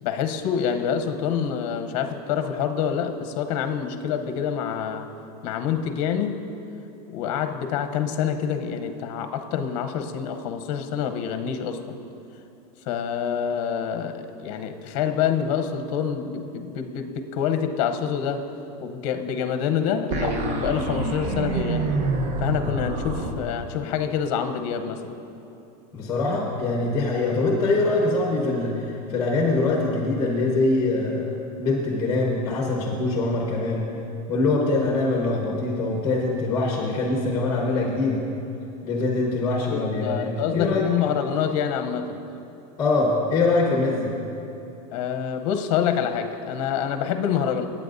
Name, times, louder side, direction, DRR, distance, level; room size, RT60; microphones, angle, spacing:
voice 1, 0.0-5.1 5.4-6.4 7.1-12.0 12.9-18.5 18.8-22.0 22.4-25.1 39.7-42.2 44.9-47.7, left 8 dB, 55° left, 7 dB, 0.8 m, -26 dB
sound 1, 20.1-23.3, right 3 dB, 35° right, 0.8 m, -26 dB
voice 2, 25.9-33.9 34.3-38.2 38.8-40.9 42.8-44.1, left 3 dB, 20° left, -1 dB, 1.2 m, -23 dB
19.0 x 8.8 x 2.6 m, 2.8 s
supercardioid pair, 155°, 20 cm